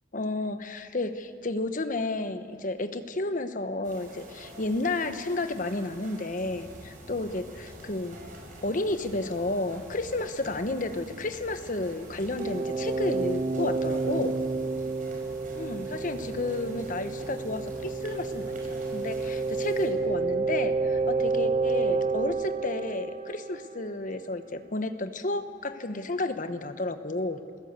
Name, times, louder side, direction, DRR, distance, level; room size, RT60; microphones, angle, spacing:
voice 1, 0.1-8.2 8.6-14.4 15.5-27.4, left 2 dB, 45° left, 9 dB, 1.1 m, -32 dB
sound 1, 3.8-19.9, right 2 dB, 45° right, 5.4 m, -49 dB
sound 2, 6.4-22.4, equal, 85° left, 7.3 m, -50 dB
sound 3, 12.4-24.0, right 4 dB, 30° right, 0.5 m, -30 dB
28.0 x 17.0 x 8.2 m, 2.4 s
head